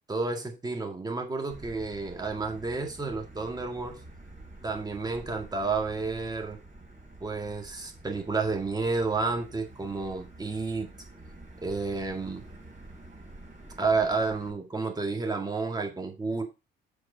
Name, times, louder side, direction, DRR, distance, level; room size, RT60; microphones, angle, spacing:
voice 1, 0.1-4.0 4.6-6.6 7.2-10.9 11.6-12.4 13.8-16.4, right 4 dB, 20° right, 3 dB, 1.9 m, -30 dB
Motor vehicle (road), 1.5-14.5, right 2 dB, 40° right, 5.5 m, -48 dB
7.5 x 4.9 x 5.0 m, 0.27 s
cardioid pair, 90°, 20 cm